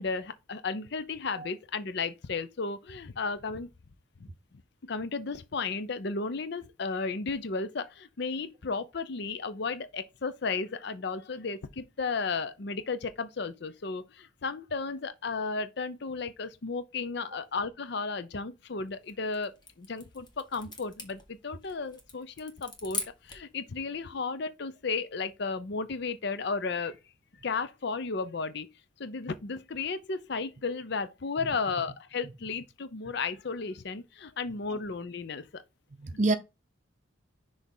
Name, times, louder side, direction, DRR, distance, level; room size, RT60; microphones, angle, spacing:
voice 1, 0.0-3.7 4.8-19.5 19.8-27.0 27.4-28.7 29.0-35.6 36.1-36.4, left 4 dB, 55° left, 0.6 m, -34 dB
sound 1, 18.9-23.5, left 3 dB, 20° left, 1.3 m, -42 dB
voice 2, 36.0-36.4, right 2 dB, 40° right, 0.6 m, -28 dB
6.2 x 3.3 x 5.4 m
head